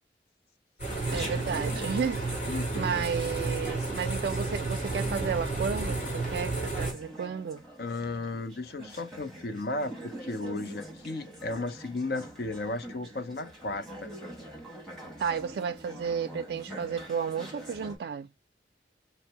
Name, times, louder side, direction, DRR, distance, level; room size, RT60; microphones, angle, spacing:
sound 1, 0.8-6.9, right 2 dB, 40° left, 1.8 m, -32 dB
Chatter, 0.8-18.0, right 1 dB, ahead, 1.1 m, -45 dB
voice 1, 1.1-2.2 2.8-7.6 15.2-18.3, right 6 dB, 65° right, 0.3 m, -32 dB
voice 2, 2.5-3.0 7.8-14.1, left 2 dB, 60° left, 0.5 m, -35 dB
4.3 x 2.0 x 2.7 m
head